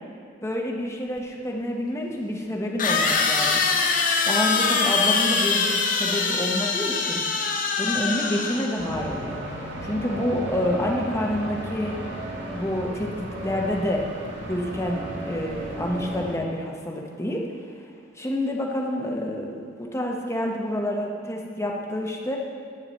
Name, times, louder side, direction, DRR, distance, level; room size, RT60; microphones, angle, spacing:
voice 1, 0.4-3.7 4.2-7.2 7.8-9.4 9.8-12.0 12.5-13.1 13.4-14.0 14.5-17.4 18.2-19.5 19.8-22.4, left 1 dB, 15° left, -1 dB, 1.0 m, -28 dB
sound 1, 1.2-1.3 2.8-8.9, left 4 dB, 45° left, 0.7 m, -23 dB
sound 2, 8.8-16.3, right 1 dB, 70° right, 1.9 m, -34 dB
9.9 x 6.8 x 4.3 m, 2.2 s
head